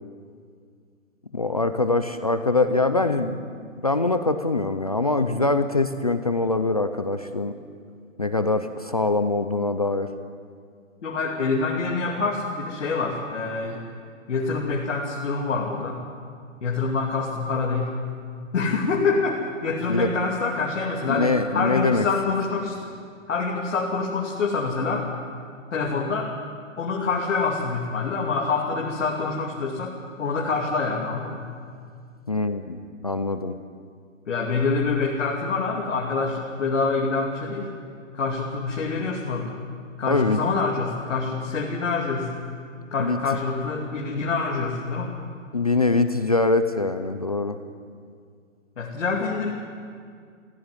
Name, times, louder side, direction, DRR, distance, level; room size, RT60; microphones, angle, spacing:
voice 1, 1.3-3.4 3.8-7.5 8.2-10.1 19.9-20.1 21.1-22.1 32.3-33.6 40.1-40.4 43.0-43.2 45.5-47.6, left 3 dB, 30° left, 9 dB, 0.5 m, -23 dB
voice 2, 11.0-13.8 14.3-16.0 16.6-17.9 18.5-22.9 23.3-25.1 25.7-26.3 26.8-31.5 34.3-37.7 38.1-39.6 40.0-42.3 42.9-45.1 48.8-49.5, left 4 dB, 65° left, -2 dB, 2.8 m, -26 dB
19.0 x 15.5 x 9.7 m, 2.1 s
hypercardioid pair, 170°, 39 cm